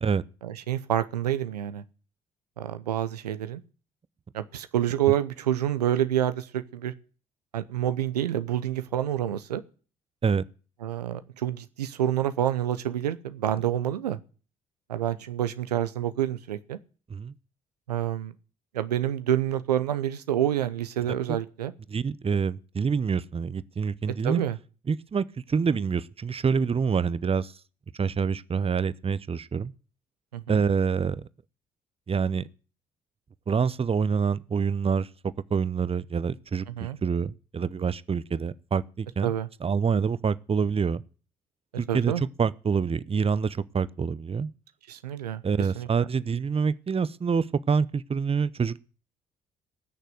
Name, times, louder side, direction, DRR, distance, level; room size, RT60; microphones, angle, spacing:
voice 1, 0.4-1.8 2.6-3.6 4.3-6.9 7.5-9.6 10.8-14.2 14.9-16.8 17.9-18.3 18.7-21.7 24.2-24.6 30.3-30.6 36.8-37.0 39.2-39.5 41.9-42.2 44.9-45.4 45.8-45.9, right 11 dB, 90° right, 0.6 m, -28 dB
voice 2, 21.9-24.4 24.9-27.5 27.9-29.7 30.5-31.3 32.1-32.4 33.5-35.1 35.5-39.3 39.6-41.0 41.8-44.5 45.4-48.8, right 6 dB, 30° right, 0.8 m, -26 dB
18.5 x 6.7 x 7.8 m
hypercardioid pair, 45°, 20 cm